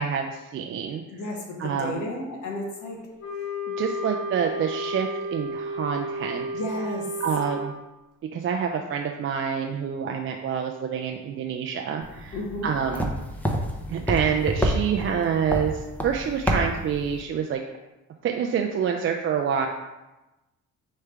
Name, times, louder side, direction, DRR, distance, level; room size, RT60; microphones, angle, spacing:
voice 1, 0.0-1.0 1.6-2.0 3.8-6.5 7.2-7.7 8.3-13.1 13.9-17.6 18.2-19.7, right 7 dB, 45° right, 2 dB, 0.4 m, -27 dB
voice 2, 1.1-3.0 6.5-7.0 12.3-12.7, left 2 dB, 75° left, 1 dB, 1.1 m, -32 dB
Wind instrument woodwind instrument, 3.2-7.7, equal, 50° left, 1.3 m, -32 dB
sound 1, 12.0-17.2, equal, 5° left, 0.6 m, -29 dB
4.7 x 3.3 x 3.3 m, 1.0 s
cardioid pair, 90°, 30 cm